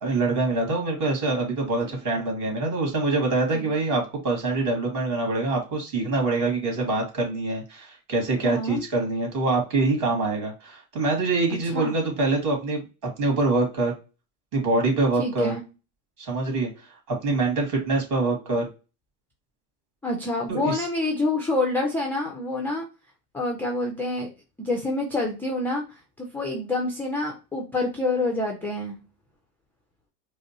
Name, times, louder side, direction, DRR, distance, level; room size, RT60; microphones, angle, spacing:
voice 1, 0.0-13.9 14.5-15.5 16.2-18.7 20.5-20.8, right 3 dB, 40° right, 1 dB, 2.1 m, -25 dB
voice 2, 8.4-8.8 11.7-12.0 15.2-15.6 20.0-22.9 23.3-24.3 24.6-25.8 26.2-29.0, left 2 dB, 5° left, 0 dB, 0.3 m, -27 dB
4.9 x 2.0 x 2.8 m, 0.30 s
supercardioid pair, 115°, 46 cm